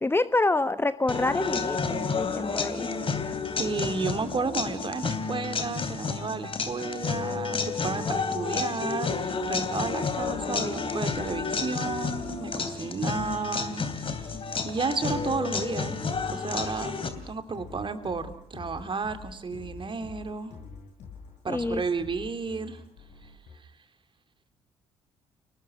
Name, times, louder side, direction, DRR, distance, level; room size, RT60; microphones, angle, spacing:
voice 1, 0.0-2.9 21.5-21.8, left 2 dB, 15° left, 13 dB, 1.0 m, -27 dB
sound 1, 1.1-17.1, left 5 dB, 40° left, 3.0 m, -31 dB
voice 2, 3.6-7.6 7.8-14.3 14.6-16.0 16.3-16.9 17.3-20.5 21.4-22.8, right 4 dB, 35° right, 9 dB, 2.9 m, -32 dB
sound 2, 9.4-23.6, left 4 dB, 60° left, 7.0 m, -46 dB
30.0 x 19.5 x 5.7 m, 0.62 s
figure-of-eight pair, 45°, 14 cm